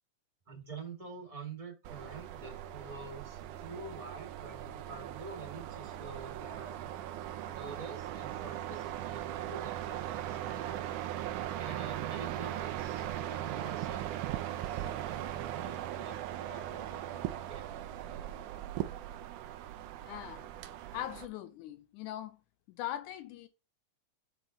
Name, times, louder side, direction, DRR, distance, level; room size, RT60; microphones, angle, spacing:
voice 1, 0.5-6.9 7.5-10.9 11.6-14.2 14.6-17.7 18.0-18.2, right 4 dB, 15° right, 1.2 m, -47 dB
sound 1, 1.8-21.3, right 12 dB, 80° right, 2.1 m, -39 dB
voice 2, 20.0-20.5 20.9-22.4 22.7-23.5, left 12 dB, 80° left, 2.1 m, -41 dB
8.1 x 3.9 x 3.9 m
omnidirectional pair, 3.6 m